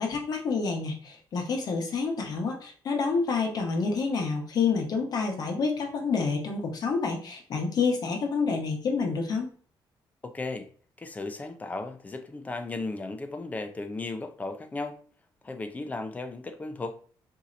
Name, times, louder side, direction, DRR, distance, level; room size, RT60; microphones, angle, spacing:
voice 1, 0.0-9.5, left 4 dB, 50° left, 2 dB, 0.9 m, -28 dB
voice 2, 10.2-10.7 11.0-15.0 15.4-17.0, left 3 dB, 20° left, 8 dB, 0.4 m, -35 dB
4.1 x 2.7 x 2.4 m, 0.43 s
cardioid pair, 150°, 8 cm